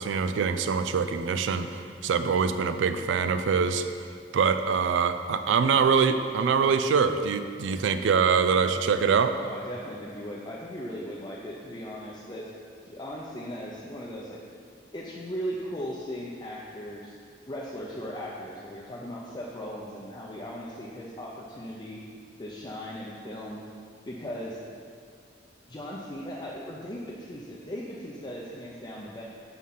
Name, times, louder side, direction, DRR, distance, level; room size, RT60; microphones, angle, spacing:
voice 1, 0.0-1.7 2.0-3.9 4.3-9.4, right 6 dB, 90° right, 10 dB, 0.4 m, -24 dB
voice 2, 9.4-12.5 12.9-14.4 14.9-17.1 17.5-22.0 22.4-23.6 24.1-24.6 25.7-29.2, equal, 25° left, -5 dB, 0.5 m, -38 dB
5.7 x 4.8 x 5.5 m, 2.3 s
head